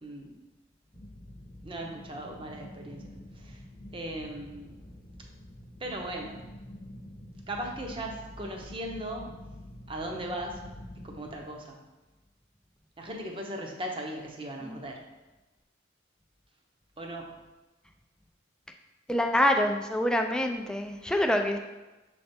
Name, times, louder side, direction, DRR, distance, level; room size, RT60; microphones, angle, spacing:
voice 1, 0.0-0.3 1.6-3.1 3.3-3.6 3.9-4.8 5.8-6.4 7.5-9.3 9.9-10.6 11.0-11.8 13.0-15.0 17.0-17.3, right 1 dB, 30° right, 1 dB, 0.8 m, -38 dB
sound 1, 0.9-11.4, left 1 dB, 20° left, 0.8 m, -47 dB
voice 2, 19.1-21.6, left 1 dB, 5° left, 4 dB, 0.4 m, -26 dB
6.6 x 3.3 x 4.3 m, 1.1 s
head